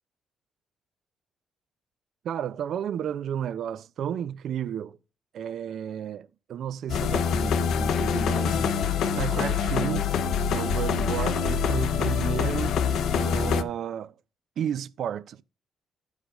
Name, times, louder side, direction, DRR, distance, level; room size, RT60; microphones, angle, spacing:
voice 1, 2.2-5.0 5.3-8.8 9.1-10.1 10.5-12.8 13.1-14.1 14.6-15.4, right 9 dB, 70° right, 0.5 m, -32 dB
sound 1, 6.9-13.6, left 6 dB, 75° left, 0.7 m, -25 dB
10.0 x 5.0 x 5.1 m
cardioid pair, 90°, 0 cm